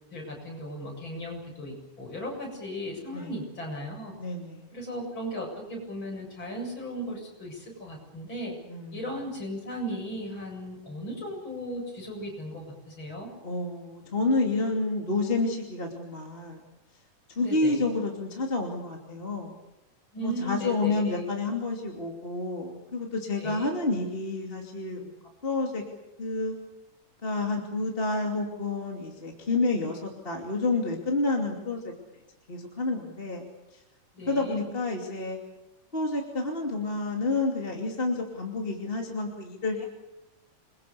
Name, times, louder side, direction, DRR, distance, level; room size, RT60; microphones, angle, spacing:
voice 1, 0.1-4.1 4.7-8.5 8.9-13.3 17.4-17.8 20.1-21.3 23.4-23.7 34.1-34.6, equal, 35° left, 1 dB, 8.1 m, -36 dB
voice 2, 4.2-4.7 8.7-9.0 13.4-16.6 17.4-19.6 20.2-25.1 25.4-25.8 26.2-26.5 27.2-31.9 32.5-33.5 33.7-33.8 34.3-35.4 35.9-39.9, left 3 dB, 20° left, 1 dB, 2.7 m, -29 dB
28.0 x 23.0 x 7.0 m, 0.95 s
omnidirectional pair, 3.7 m